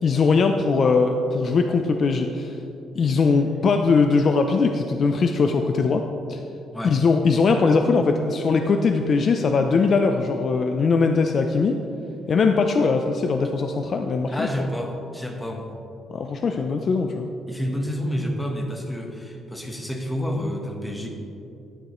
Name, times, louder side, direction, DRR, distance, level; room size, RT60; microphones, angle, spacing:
voice 1, 0.0-2.6 3.0-6.4 6.8-11.8 12.3-14.5 16.1-17.3, left 4 dB, 40° left, 5 dB, 0.4 m, -21 dB
voice 2, 14.3-15.7 17.5-21.1, equal, 5° left, 1 dB, 1.1 m, -29 dB
11.0 x 10.0 x 3.0 m, 2.8 s
cardioid pair, 145°, 0 cm